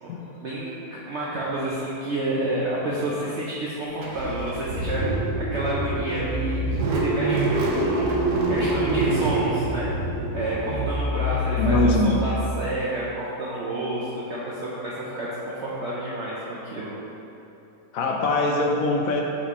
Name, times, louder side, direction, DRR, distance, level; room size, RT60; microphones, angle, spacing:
voice 1, 0.4-5.0 5.5-6.6 6.9-8.1 8.5-9.9 10.3-16.9, right 1 dB, 55° right, -7 dB, 0.8 m, -29 dB
Car / Engine starting, 4.0-12.8, right 2 dB, 85° right, 1.3 m, -25 dB
voice 2, 11.6-12.2 17.9-19.2, left 3 dB, 70° left, 0 dB, 1.0 m, -22 dB
5.2 x 4.3 x 4.2 m, 2.9 s
omnidirectional pair, 1.6 m